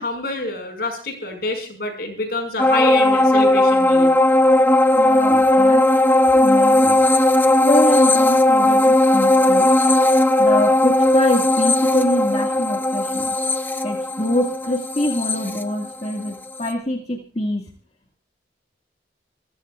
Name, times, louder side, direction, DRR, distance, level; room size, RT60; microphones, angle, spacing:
voice 1, 0.0-4.1, left 2 dB, 60° left, 5 dB, 5.7 m, -27 dB
sound 1, 2.6-16.3 16.7-16.8, left 1 dB, 10° left, 0.9 m, -16 dB
voice 2, 4.9-5.9 6.3-7.0 7.6-9.7 10.4-13.4 13.8-17.7, left 1 dB, 35° left, 1 dB, 2.0 m, -24 dB
27.0 x 15.5 x 2.5 m, 0.37 s
head